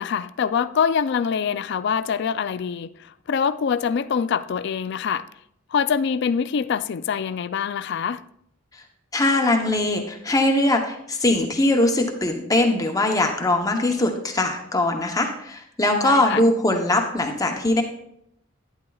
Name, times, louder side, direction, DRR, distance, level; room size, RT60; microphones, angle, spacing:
voice 1, 0.0-2.9 3.3-5.2 5.7-8.2 16.0-16.4, left 6 dB, 60° left, 0.4 m, -24 dB
voice 2, 9.1-17.8, left 1 dB, 20° left, 0.8 m, -21 dB
11.5 x 9.6 x 2.3 m
head